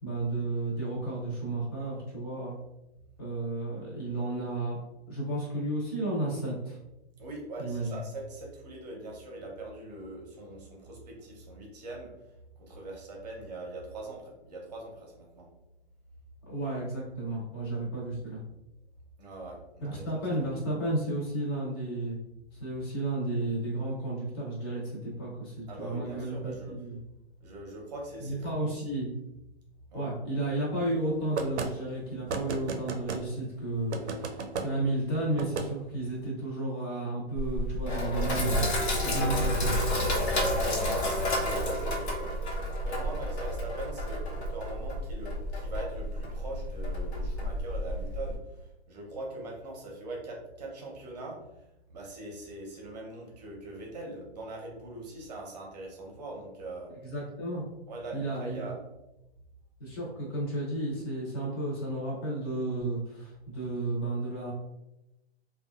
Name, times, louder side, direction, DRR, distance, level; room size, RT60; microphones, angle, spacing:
voice 1, 0.0-2.6 3.2-4.8 5.1-6.8 7.6-8.0 16.5-18.4 19.8-22.2 22.6-27.0 28.2-29.1 29.9-38.6 39.0-39.7 57.0-57.6 58.1-58.7 59.8-64.5, right 2 dB, 25° left, -5 dB, 0.7 m, -32 dB
voice 2, 7.2-12.1 12.6-15.5 19.2-20.1 25.7-26.7 27.4-28.9 29.9-30.1 40.7-42.4 42.8-51.6 51.9-56.9 57.9-58.8, right 2 dB, 40° right, -1 dB, 0.7 m, -42 dB
sound 1, 31.4-31.7 32.3-33.2 33.9-34.7 35.4-35.7, right 4 dB, 85° right, 0.5 m, -33 dB
Sink (filling or washing), 37.4-48.4, left 1 dB, 75° left, 1.0 m, -30 dB
2.7 x 2.3 x 2.3 m, 0.91 s
hypercardioid pair, 165°, 33 cm